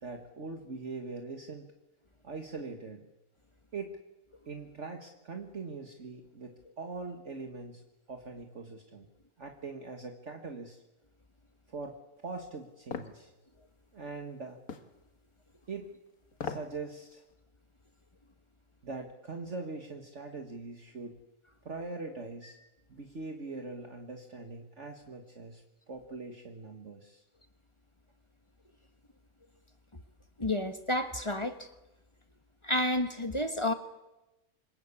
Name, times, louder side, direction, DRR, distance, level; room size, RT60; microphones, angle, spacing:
voice 1, 0.0-1.7 2.2-3.1 3.7-4.0 4.5-7.8 8.1-9.1 9.4-10.8 11.7-12.0 12.2-13.3 13.9-14.6 15.7-15.9 16.4-17.2 18.8-21.2 21.6-22.6 22.9-27.2, right 3 dB, 50° right, 4 dB, 2.1 m, -42 dB
sound 1, 12.9-13.2 14.7-14.9 16.3-16.7 17.1-17.2, left 5 dB, 70° left, 2.1 m, -38 dB
voice 2, 30.4-31.7 32.6-33.7, left 1 dB, 20° left, 8 dB, 1.4 m, -30 dB
26.5 x 22.5 x 8.5 m, 1.0 s
omnidirectional pair, 1.6 m